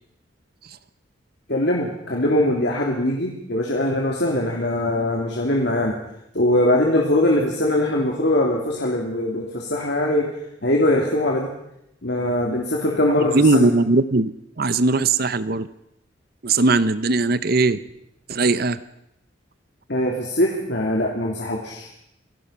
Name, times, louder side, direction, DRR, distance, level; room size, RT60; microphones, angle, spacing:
voice 1, 1.5-6.0 6.3-10.3 10.6-11.5 12.0-13.7 19.9-21.9, left 1 dB, 60° left, -1 dB, 3.0 m, -21 dB
voice 2, 13.3-15.7 16.4-17.8 18.3-18.8, right 3 dB, 50° right, 15 dB, 0.8 m, -19 dB
28.0 x 17.5 x 5.7 m, 0.81 s
head